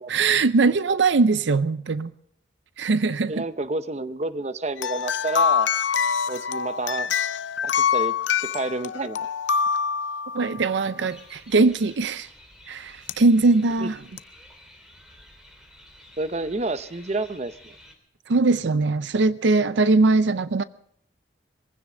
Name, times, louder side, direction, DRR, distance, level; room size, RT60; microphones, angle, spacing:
voice 1, 0.1-2.1 2.8-3.4 10.3-12.3 12.7-14.0 18.3-20.6, right 3 dB, 70° right, 0.5 m, -21 dB
voice 2, 3.3-5.7 6.3-7.1 7.6-9.2 13.8-13.9 16.2-17.5, right 2 dB, 35° right, 0.7 m, -29 dB
sound 1, 4.8-10.7 13.1-13.2 14.2-14.3, left 7 dB, 75° left, 0.5 m, -25 dB
sound 2, 11.1-17.9, left 1 dB, 5° right, 2.8 m, -50 dB
22.5 x 16.0 x 3.8 m
head